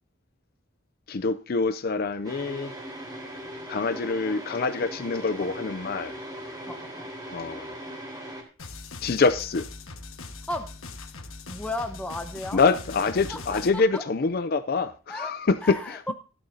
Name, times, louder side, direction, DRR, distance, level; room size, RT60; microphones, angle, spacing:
voice 1, 1.1-2.7 3.7-6.1 7.3-7.7 9.0-9.7 12.5-16.1, left 4 dB, 45° left, 0.5 m, -25 dB
sound 1, 2.2-8.4, equal, 20° right, 3.2 m, -39 dB
voice 2, 6.7-7.1 10.5-10.7 11.5-12.6 13.3-14.0 15.1-16.1, left 1 dB, 5° left, 1.1 m, -35 dB
sound 2, 8.6-13.7, left 3 dB, 85° left, 1.5 m, -41 dB
16.5 x 12.0 x 2.8 m
head